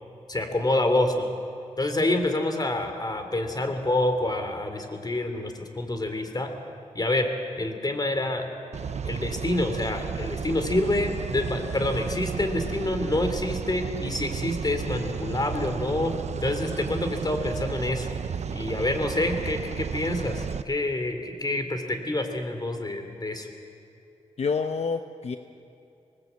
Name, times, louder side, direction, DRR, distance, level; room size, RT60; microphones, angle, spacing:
voice 1, 0.3-1.3 1.8-6.5 6.9-7.3 7.5-8.5 9.0-16.1 16.4-18.1 18.5-23.5, left 1 dB, 35° left, 6 dB, 3.3 m, -27 dB
sound 1, 8.7-20.6, right 7 dB, 70° right, 0.8 m, -33 dB
voice 2, 24.4-25.4, left 5 dB, 65° left, 7 dB, 0.9 m, -28 dB
25.5 x 19.5 x 8.3 m, 2.8 s
cardioid pair, 65°, 12 cm